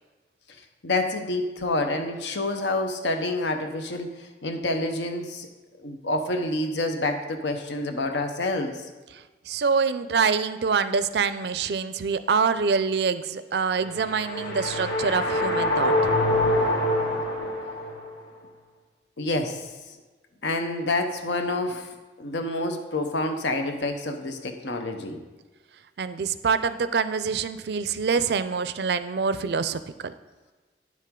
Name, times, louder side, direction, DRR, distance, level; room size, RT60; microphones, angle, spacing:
voice 1, 0.8-5.5 5.8-8.9 19.2-19.7 20.4-21.9 22.2-25.2, left 2 dB, 85° left, 6 dB, 0.9 m, -28 dB
voice 2, 9.5-16.1 26.0-30.1, right 5 dB, 70° right, 13 dB, 0.4 m, -25 dB
sound 1, 13.8-18.1, left 1 dB, 60° left, 2.0 m, -25 dB
9.6 x 7.5 x 3.7 m, 1.2 s
head